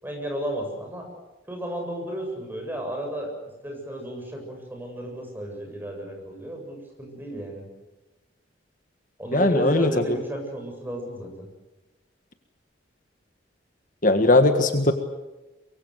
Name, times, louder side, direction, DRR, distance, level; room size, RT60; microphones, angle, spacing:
voice 1, 0.0-1.1 1.5-3.3 3.6-7.6 9.2-11.5, right 1 dB, 10° right, 2 dB, 7.5 m, -33 dB
voice 2, 9.3-9.9 14.0-14.9, left 2 dB, 45° left, 7 dB, 1.6 m, -19 dB
24.0 x 23.5 x 8.1 m, 1.0 s
head